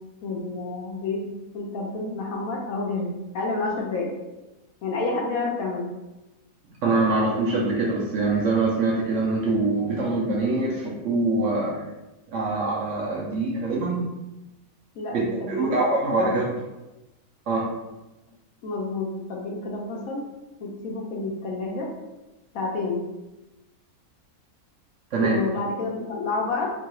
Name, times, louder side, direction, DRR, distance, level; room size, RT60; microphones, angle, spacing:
voice 1, 0.2-1.3 1.5-3.1 3.3-4.1 4.8-5.9 15.0-15.8 16.1-16.5 18.6-20.2 20.6-21.9 22.5-23.0 25.2-26.7, left 3 dB, 70° left, -1 dB, 0.9 m, -29 dB
voice 2, 6.8-11.7 12.3-14.0 15.1-15.2 15.5-16.4 17.5-17.7 25.1-25.4, right 3 dB, 65° right, -4 dB, 0.8 m, -24 dB
3.0 x 2.3 x 2.9 m, 1.0 s
omnidirectional pair, 1.6 m